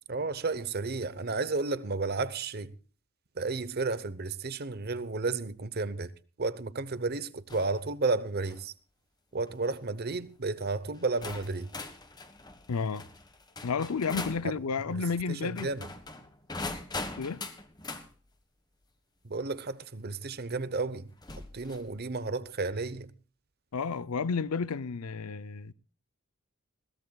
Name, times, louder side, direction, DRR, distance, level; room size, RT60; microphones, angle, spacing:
voice 1, 0.1-2.8 3.3-6.1 6.4-8.7 9.3-11.7 14.4-14.5 14.9-15.0 15.3-15.9 19.2-21.1 21.5-23.1, right 3 dB, 45° right, 0.8 m, -32 dB
sound 1, 7.5-7.8 8.3-8.6 9.5-9.8 10.6-10.7 11.2-14.5 15.5-18.1 19.8-19.9 21.2-21.9, left 2 dB, 20° left, 1.4 m, -41 dB
voice 2, 12.7-13.1 13.6-15.7 17.2-17.5 23.7-25.7, left 5 dB, 90° left, 0.6 m, -31 dB
21.0 x 17.0 x 2.3 m
head